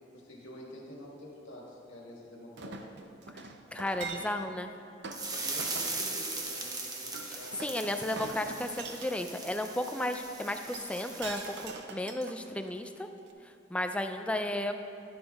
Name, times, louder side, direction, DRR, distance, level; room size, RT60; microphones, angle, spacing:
voice 1, 0.1-2.9 5.3-7.9, left 1 dB, 85° left, -3 dB, 1.5 m, -48 dB
Chink clink, 2.6-4.5 5.0-5.2 5.6-6.0 7.1-9.1 10.5-12.8 13.3-13.4, right 4 dB, 60° right, 0.5 m, -43 dB
voice 2, 3.3-4.7 7.3-13.1 13.4-14.7, left 1 dB, 5° left, 6 dB, 0.3 m, -34 dB
sound 1, 5.1-11.7, right 3 dB, 20° right, 0.7 m, -39 dB
11.0 x 9.3 x 2.3 m, 2.6 s
head